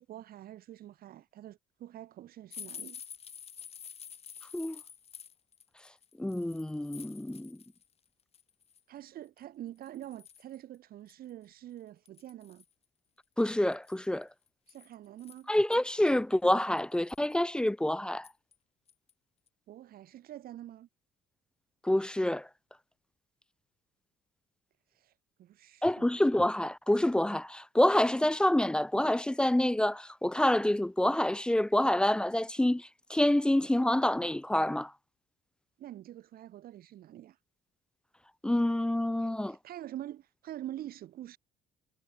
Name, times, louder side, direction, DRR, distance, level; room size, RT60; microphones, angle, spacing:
voice 1, 0.0-3.0 8.9-12.6 14.7-15.5 19.7-20.9 24.9-26.1 35.8-37.4 39.4-41.4, right 12 dB, 65° right, 1.7 m, -46 dB
sound 1, 2.5-7.9 8.2-8.8 9.4-9.5 9.8-10.6 11.1-11.2 11.4-11.5 12.0-12.7 13.7-15.8 16.3-16.4 16.8-17.3 18.2-18.5 18.9-19.1 19.5-19.6, left 7 dB, 35° left, 1.4 m, -49 dB
voice 2, 6.2-7.6 13.4-14.3 15.5-18.3 21.8-22.5 25.8-34.9 38.4-39.6, left 1 dB, 5° left, 0.3 m, -27 dB
cardioid pair, 110°, 17 cm